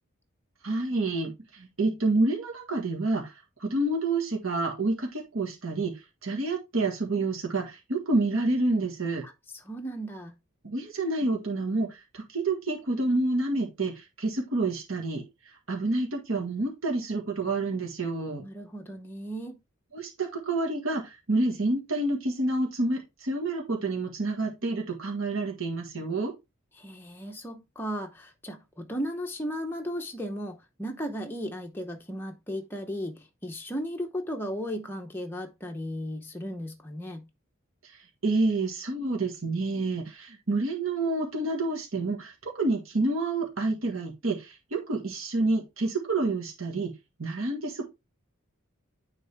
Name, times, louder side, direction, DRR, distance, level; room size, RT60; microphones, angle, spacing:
voice 1, 0.6-3.3 3.6-9.2 10.6-18.4 19.9-26.3 37.8-38.0 38.2-46.9 47.2-47.9, right 2 dB, 75° right, 1.6 m, -28 dB
voice 2, 9.2-10.3 18.4-19.6 26.7-37.2, equal, 10° left, 0.8 m, -35 dB
9.8 x 3.8 x 3.4 m
head